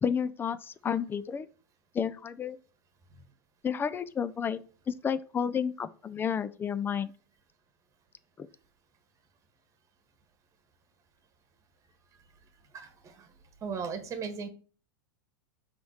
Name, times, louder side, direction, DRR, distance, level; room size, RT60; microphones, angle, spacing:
voice 1, 0.0-1.5 1.9-2.6 3.6-4.6 4.9-7.1 8.4-8.5, left 7 dB, 15° left, 0.5 m, -31 dB
voice 2, 12.7-13.3 13.6-14.5, right 5 dB, 25° right, 1.5 m, -37 dB
5.9 x 3.6 x 5.7 m
hypercardioid pair, 120°, 12 cm